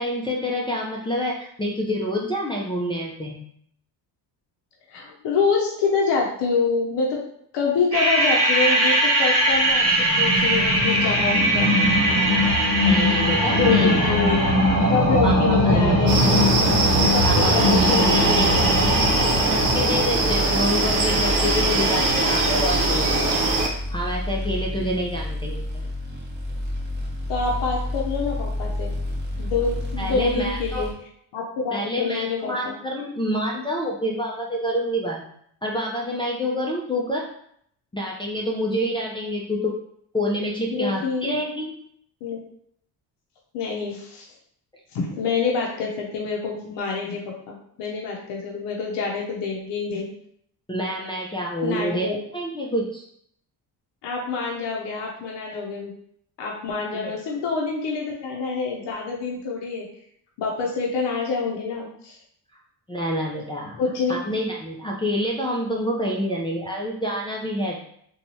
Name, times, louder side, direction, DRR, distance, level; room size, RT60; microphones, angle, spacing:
voice 1, 0.0-3.4 12.8-14.2 15.2-16.0 17.2-18.7 19.5-23.3 23.9-25.9 30.0-30.9 31.7-35.2 35.6-37.3 37.9-39.8 40.1-41.7 50.7-53.0 56.9-57.1 62.9-63.8 64.1-67.8, equal, 10° left, -4 dB, 0.4 m, -27 dB
voice 2, 4.9-7.2 7.5-11.8 12.5-12.7 13.5-14.5 14.9-16.4 17.1-18.6 27.3-28.9 29.4-30.9 31.3-32.7 40.7-41.4 42.2-42.4 43.5-44.3 44.9-50.1 51.6-52.2 54.0-55.9 56.4-59.9 60.4-62.2 63.8-64.2, left 4 dB, 75° left, -1 dB, 0.6 m, -26 dB
sound 1, 7.9-23.2, equal, 40° right, 1.4 m, -21 dB
sound 2, 16.1-23.7, right 3 dB, 70° right, 0.8 m, -22 dB
sound 3, 17.8-30.9, left 1 dB, 25° right, 0.8 m, -30 dB
2.9 x 2.3 x 2.6 m, 0.68 s
cardioid pair, 75°, 42 cm